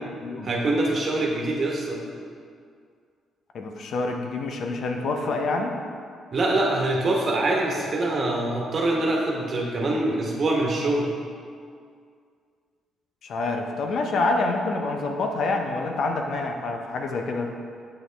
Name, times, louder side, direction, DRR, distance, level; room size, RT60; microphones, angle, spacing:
voice 1, 0.4-2.0 6.3-11.1, right 2 dB, 50° right, -1 dB, 1.2 m, -24 dB
voice 2, 3.5-5.8 13.2-17.5, left 3 dB, 65° left, 3 dB, 0.7 m, -27 dB
7.6 x 5.3 x 3.4 m, 2.2 s
cardioid pair, 90°, 0 cm